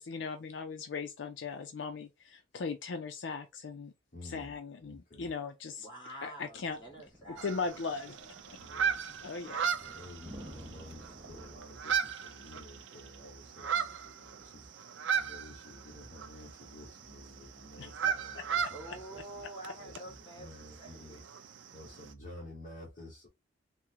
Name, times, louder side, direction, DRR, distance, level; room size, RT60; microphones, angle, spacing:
voice 1, 0.0-3.9 4.3-5.9 6.2-6.8 7.3-8.6 9.2-9.7 17.8-17.9 18.4-18.5, left 4 dB, 70° left, 0.4 m, -38 dB
voice 2, 4.1-5.3 8.5-9.0 9.8-19.4 19.8-21.2 21.7-23.3, left 1 dB, 45° left, 0.9 m, -51 dB
voice 3, 5.8-7.5 18.7-20.5 20.8-21.2, right 1 dB, 25° left, 1.7 m, -47 dB
sound 1, 6.5-11.6, equal, 15° right, 0.5 m, -53 dB
sound 2, 7.4-22.1, right 7 dB, 80° right, 0.5 m, -37 dB
3.6 x 2.1 x 2.8 m
head